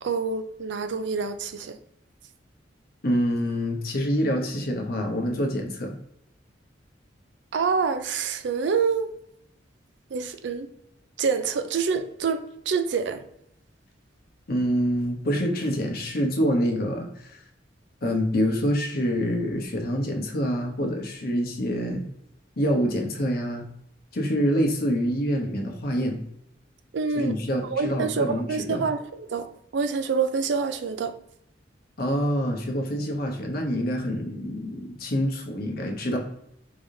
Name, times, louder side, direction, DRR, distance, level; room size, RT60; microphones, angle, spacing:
voice 1, 0.0-1.8 7.5-9.1 10.1-10.7 11.2-13.3 26.9-29.5 29.7-31.1, right 5 dB, 70° right, 0.4 m, -27 dB
voice 2, 3.0-5.9 14.5-17.4 18.0-22.0 22.6-23.7 24.1-26.2 27.1-28.8 32.0-36.2, equal, 55° left, 0.9 m, -26 dB
4.8 x 3.4 x 2.7 m
head